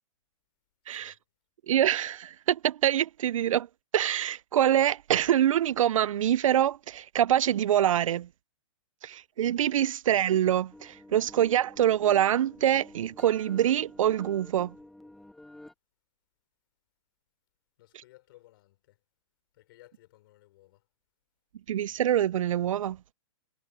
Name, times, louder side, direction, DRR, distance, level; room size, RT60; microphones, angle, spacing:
voice 1, 0.8-1.2 17.8-19.0 19.5-20.9, left 17 dB, 45° left, 5.7 m, -58 dB
voice 2, 1.7-3.7 3.9-8.3 9.0-14.7 21.7-23.0, right 11 dB, 75° right, 0.4 m, -25 dB
sound 1, 10.7-15.7, left 1 dB, ahead, 0.5 m, -51 dB
hypercardioid pair, 160°, 17 cm